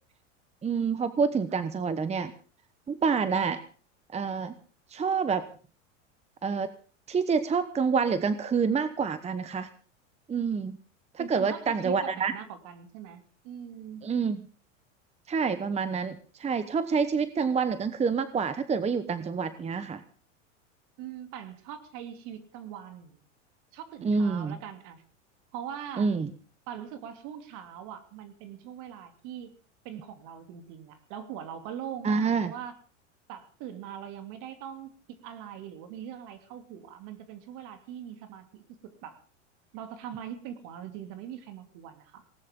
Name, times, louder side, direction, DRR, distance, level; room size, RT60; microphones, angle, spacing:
voice 1, 0.6-2.3 2.9-3.6 4.1-4.5 4.9-5.5 6.4-6.7 7.1-9.7 10.3-10.8 11.1-12.3 14.0-14.4 15.3-20.0 24.0-24.6 26.0-26.3 32.0-32.5, right 5 dB, 15° right, 12 dB, 1.0 m, -27 dB
voice 2, 11.2-14.0 21.0-23.2 23.7-25.0 25.5-26.1 26.7-29.5 29.8-32.7 33.3-39.2 39.7-42.2, right 9 dB, 55° right, 7 dB, 2.9 m, -42 dB
19.0 x 18.5 x 3.8 m, 0.38 s
hypercardioid pair, 105°, 37 cm